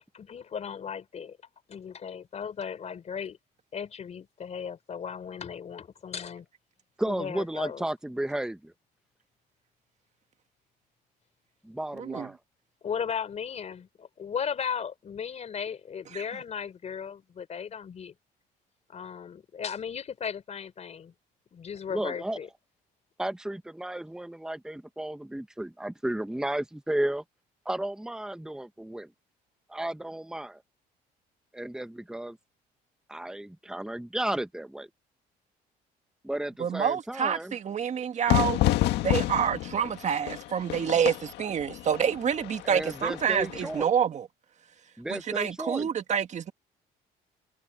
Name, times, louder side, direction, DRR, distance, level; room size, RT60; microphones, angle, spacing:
voice 1, 0.1-1.4 1.7-3.4 3.7-6.5 7.1-7.8 12.8-13.9 14.2-18.1 18.9-21.1 21.5-22.5, left 7 dB, 40° left, 3.8 m, -36 dB
voice 2, 7.0-8.7 11.6-12.4 21.9-22.4 23.2-27.2 27.6-29.1 29.7-30.6 31.5-32.4 33.1-34.9 36.2-37.5 42.6-43.9 45.0-45.9, right 1 dB, 5° right, 1.2 m, -33 dB
voice 3, 11.9-12.3 16.1-16.2 36.6-38.6 39.0-44.3 45.1-46.5, right 8 dB, 45° right, 1.8 m, -28 dB
Fire / Fireworks, 38.3-43.8, left 15 dB, 85° left, 1.7 m, -29 dB
cardioid pair, 110°, 17 cm